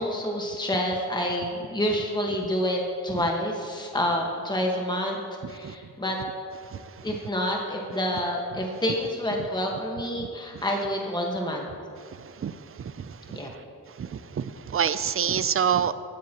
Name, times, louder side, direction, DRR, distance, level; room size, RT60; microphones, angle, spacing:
voice 1, 0.0-5.2 5.5-6.2 7.0-11.7 13.3-13.5, equal, 10° left, 0 dB, 1.5 m, -28 dB
voice 2, 12.4-13.4 14.0-15.9, right 8 dB, 35° right, 14 dB, 0.5 m, -27 dB
15.5 x 9.3 x 3.0 m, 2.3 s
cardioid pair, 65°, 39 cm